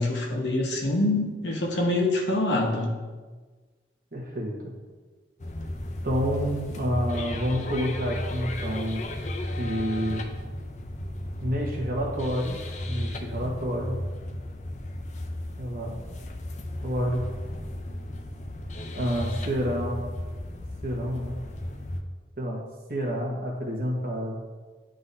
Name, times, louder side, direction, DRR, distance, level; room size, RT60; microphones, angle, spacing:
voice 1, 0.0-2.9, left 2 dB, 80° left, 1 dB, 1.0 m, -25 dB
voice 2, 4.1-4.6 6.0-9.0 9.6-10.2 11.4-12.6 12.9-14.0 15.6-16.0 16.8-17.2 18.9-20.0 20.8-21.4 22.4-22.6 22.9-24.4, equal, 50° right, -2 dB, 1.2 m, -29 dB
sound 1, 5.4-22.0, left 1 dB, 40° left, 0.4 m, -34 dB
9.7 x 3.8 x 2.7 m, 1.4 s
head